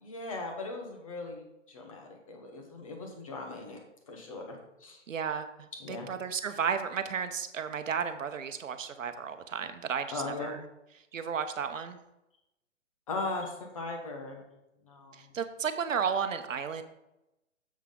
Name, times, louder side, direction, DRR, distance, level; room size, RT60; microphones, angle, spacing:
voice 1, 0.0-3.8 4.1-5.0 5.8-6.1 10.1-10.6 13.1-14.4 14.9-15.2, left 3 dB, 25° left, 2 dB, 1.1 m, -38 dB
voice 2, 5.1-10.6 11.1-12.0 15.1-16.8, right 7 dB, 90° right, 9 dB, 1.0 m, -33 dB
7.4 x 5.9 x 3.7 m, 0.92 s
hypercardioid pair, 175°, 37 cm